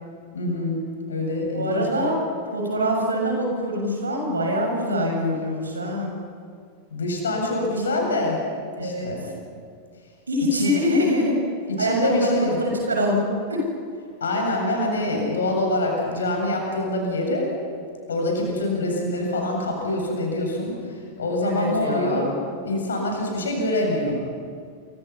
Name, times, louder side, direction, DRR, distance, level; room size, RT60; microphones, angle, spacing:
voice 1, 0.3-0.8 1.1-2.1 6.9-8.4 8.8-9.3 10.5-10.7 11.7-12.6 14.2-17.5 18.1-22.3 22.6-24.3, left 1 dB, 70° left, 0 dB, 7.7 m, -25 dB
voice 2, 1.5-2.2 2.5-6.1 7.8-8.0 8.8-9.2 10.3-11.4 11.8-13.7 21.4-22.3, equal, 75° right, 1 dB, 7.2 m, -24 dB
27.5 x 25.5 x 5.9 m, 2.2 s
figure-of-eight pair, 90°, 0 cm